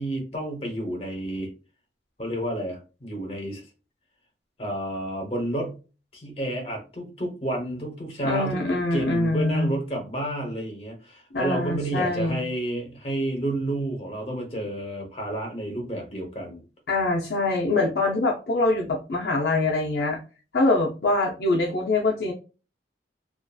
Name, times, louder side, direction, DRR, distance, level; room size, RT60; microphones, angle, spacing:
voice 1, 0.0-1.5 2.2-3.6 4.6-5.8 6.1-16.6, right 1 dB, 30° left, 2 dB, 0.8 m, -30 dB
voice 2, 8.2-9.7 11.3-12.4 16.9-20.2 20.5-22.3, left 2 dB, 60° left, -1 dB, 0.5 m, -24 dB
2.6 x 2.4 x 2.2 m, 0.33 s
head